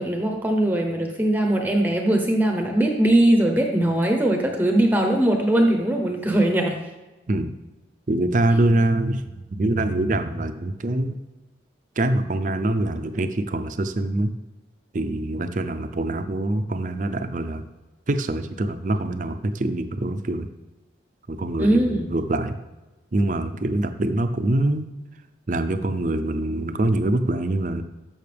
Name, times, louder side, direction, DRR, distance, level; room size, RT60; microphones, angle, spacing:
voice 1, 0.0-6.8 21.6-22.1, right 1 dB, 10° right, 2 dB, 0.7 m, -20 dB
voice 2, 8.1-11.2 12.0-14.3 14.9-17.6 18.1-20.5 21.3-22.5 23.1-24.9 25.5-27.8, right 1 dB, 45° right, 8 dB, 0.5 m, -24 dB
13.5 x 5.7 x 3.4 m, 1.1 s
head